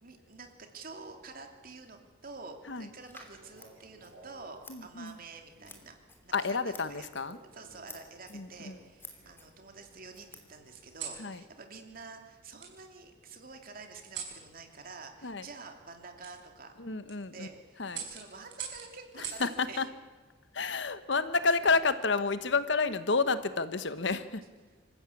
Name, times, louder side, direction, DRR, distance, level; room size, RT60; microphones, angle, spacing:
voice 1, 0.0-6.0 6.2-7.1 7.5-16.7 17.2-19.9 24.4-24.5, right 4 dB, 50° right, 4 dB, 2.8 m, -48 dB
Scissors, 3.0-11.0, left 2 dB, 10° left, 3.0 m, -55 dB
sound 1, 3.4-4.5 5.5-5.9 7.2-8.0 8.6-9.5 10.7-11.2 12.6-12.7 14.0-14.4 16.2-16.3 16.9-17.2 17.9-19.5 21.0-21.4, right 7 dB, 65° right, 5.6 m, -44 dB
voice 2, 4.7-5.2 6.3-7.4 8.3-8.8 11.2-11.4 15.2-15.5 16.8-17.5 17.8-18.0 19.4-19.8 20.5-24.4, left 4 dB, 65° left, 12 dB, 1.2 m, -30 dB
26.5 x 15.0 x 8.5 m, 1.3 s
head